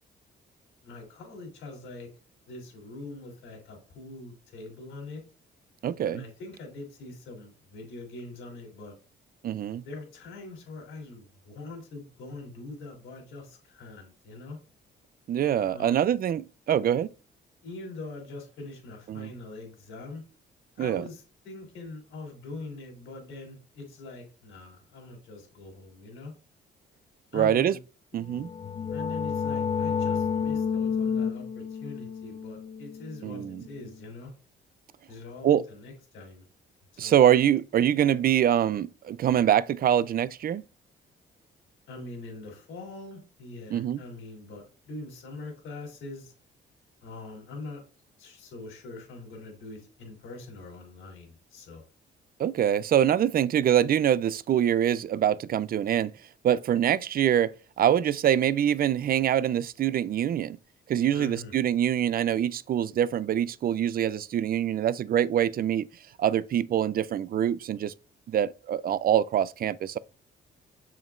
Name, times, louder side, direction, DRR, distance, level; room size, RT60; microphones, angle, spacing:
voice 1, 0.8-2.1 2.5-5.2 6.0-8.9 9.8-14.6 15.7-16.0 17.6-20.2 20.8-26.3 27.3-27.8 28.9-34.3 35.1-36.5 37.0-37.2 41.9-46.3 47.0-47.8 48.2-51.8 61.1-61.5, left 2 dB, 85° left, 3.4 m, -43 dB
voice 2, 5.8-6.2 9.4-9.8 15.3-17.1 19.1-19.3 20.8-21.0 27.3-27.7 28.1-28.5 33.2-33.6 35.4-35.6 37.0-40.6 43.7-44.0 52.4-56.1 56.4-60.6 60.9-65.9 66.2-67.9 68.3-70.0, right 10 dB, 50° right, 0.4 m, -24 dB
sound 1, 28.3-33.8, left 6 dB, 30° left, 0.3 m, -30 dB
7.1 x 5.8 x 2.5 m
cardioid pair, 90°, 20 cm